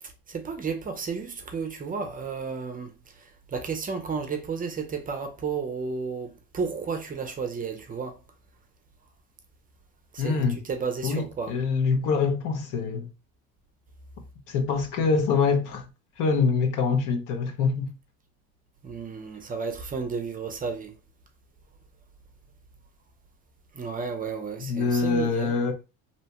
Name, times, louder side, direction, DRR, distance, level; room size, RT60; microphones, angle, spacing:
voice 1, 0.3-2.9 3.5-8.2 10.1-10.4 10.7-11.5 18.8-20.9 23.7-25.5, right 5 dB, 25° right, 0.5 m, -32 dB
voice 2, 10.2-10.6 11.0-13.1 14.5-15.8 16.2-17.9 24.6-25.7, left 5 dB, 65° left, 0.8 m, -25 dB
2.7 x 2.1 x 2.9 m
cardioid pair, 105°, 34 cm